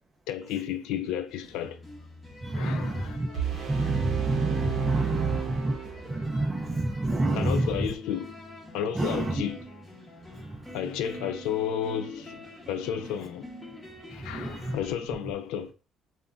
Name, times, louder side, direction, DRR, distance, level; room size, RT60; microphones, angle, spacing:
voice 1, 0.3-1.8 2.5-3.9 5.1-5.2 7.3-8.3 8.7-9.6 10.7-12.4 12.7-13.5 14.1-15.7, left 9 dB, 90° left, 0.3 m, -32 dB
sound 1, 1.3-14.9, equal, 15° left, 0.8 m, -46 dB
voice 2, 2.4-3.3 3.7-7.9 9.0-9.3 10.3-10.7 14.1-14.8, right 2 dB, 20° right, 0.4 m, -29 dB
sound 2, 3.3-6.4, right 9 dB, 50° right, 0.7 m, -31 dB
2.2 x 2.1 x 3.7 m
cardioid pair, 125°, 0 cm